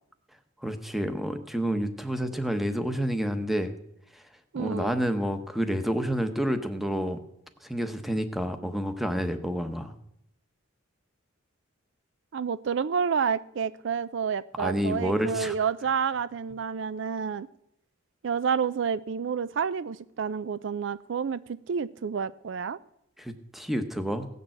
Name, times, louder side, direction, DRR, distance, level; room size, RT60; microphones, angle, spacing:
voice 1, 0.6-3.7 4.1-4.2 4.6-7.2 7.6-10.0 14.6-15.6 23.2-24.3, equal, ahead, 9 dB, 1.0 m, -29 dB
voice 2, 4.5-5.0 12.3-17.5 18.2-22.8, right 6 dB, 65° right, 17 dB, 0.4 m, -29 dB
17.0 x 6.8 x 7.6 m, 0.78 s
head